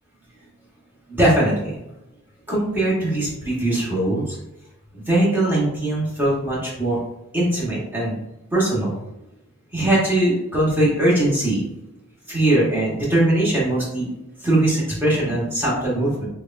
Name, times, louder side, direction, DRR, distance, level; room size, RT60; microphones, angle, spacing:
voice 1, 1.1-1.8 2.5-4.3 4.9-7.0 7.3-8.1 8.5-9.0 9.7-11.6 12.3-14.1 14.4-16.2, right 1 dB, 10° right, -7 dB, 1.2 m, -21 dB
6.0 x 2.2 x 2.5 m, 0.91 s
head